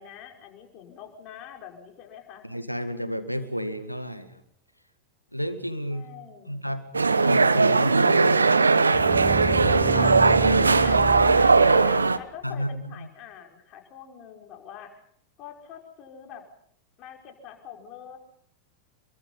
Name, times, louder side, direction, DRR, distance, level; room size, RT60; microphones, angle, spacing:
voice 1, 0.0-2.5 5.9-6.6 9.9-10.1 10.6-14.9 15.4-16.4 17.0-18.2, left 8 dB, 35° left, 2 dB, 5.5 m, -44 dB
voice 2, 2.4-4.4 5.3-6.1 6.5-8.2 9.3-10.1 10.5-11.4 12.4-13.1, equal, 90° left, 10 dB, 2.1 m, -31 dB
sound 1, 6.9-12.2, right 4 dB, 80° right, 1.1 m, -19 dB
sound 2, 8.9-12.1, right 6 dB, 15° right, 1.0 m, -31 dB
28.0 x 23.5 x 5.6 m, 0.67 s
figure-of-eight pair, 90°, 0 cm